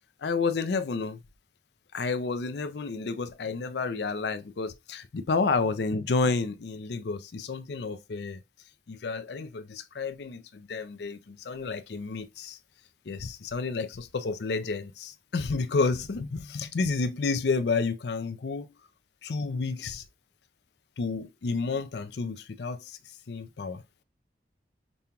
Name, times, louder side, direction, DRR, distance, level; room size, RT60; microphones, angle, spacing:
voice 1, 0.2-1.2 1.9-8.4 8.9-12.6 13.1-18.7 19.2-20.0 21.0-23.0 23.3-23.8, left 4 dB, 70° left, 0.5 m, -30 dB
5.3 x 2.2 x 2.9 m
head